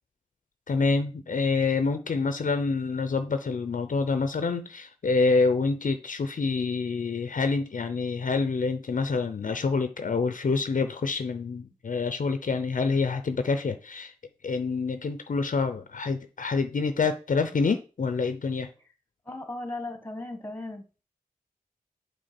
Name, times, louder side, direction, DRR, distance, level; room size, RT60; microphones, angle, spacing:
voice 1, 0.7-14.1 14.4-18.7, left 4 dB, 60° left, 0.7 m, -27 dB
voice 2, 19.3-20.8, left 2 dB, 15° left, 1.4 m, -36 dB
7.8 x 4.6 x 4.4 m
wide cardioid pair, 90°, 15 cm